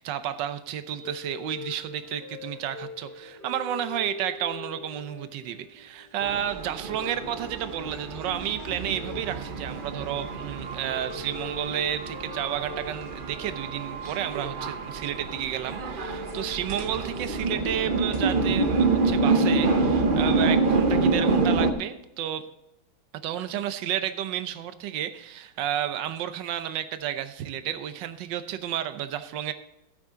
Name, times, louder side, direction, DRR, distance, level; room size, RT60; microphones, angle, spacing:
voice 1, 0.0-22.5 23.2-29.5, right 10 dB, 70° right, 11 dB, 1.4 m, -31 dB
sound 1, 1.0-19.5, left 3 dB, 25° left, 5.5 m, -44 dB
sound 2, 6.2-21.7, right 3 dB, 35° right, 0.8 m, -27 dB
13.5 x 9.0 x 3.8 m, 0.87 s
omnidirectional pair, 2.1 m